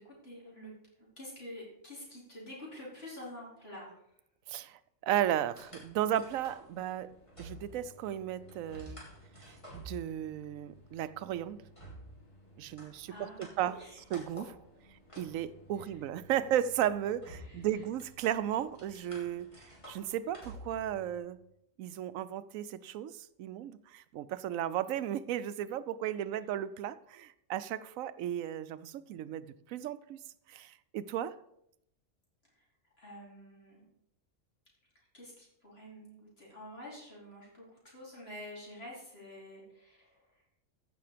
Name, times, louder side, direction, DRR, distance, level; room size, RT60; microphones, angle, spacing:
voice 1, 0.0-4.0 13.1-14.2 15.8-16.0 17.4-17.8 32.5-32.7 33.0-33.9 35.1-40.4, left 1 dB, 50° left, -5 dB, 4.8 m, -48 dB
voice 2, 4.5-7.1 7.4-9.0 9.4-11.6 12.6-14.6 15.2-19.5 19.9-21.4 21.8-30.2 30.5-31.3, right 11 dB, 85° right, 15 dB, 1.0 m, -35 dB
sound 1, 5.4-21.2, equal, 25° left, 3.1 m, -52 dB
15.0 x 6.1 x 5.0 m, 0.78 s
omnidirectional pair, 1.4 m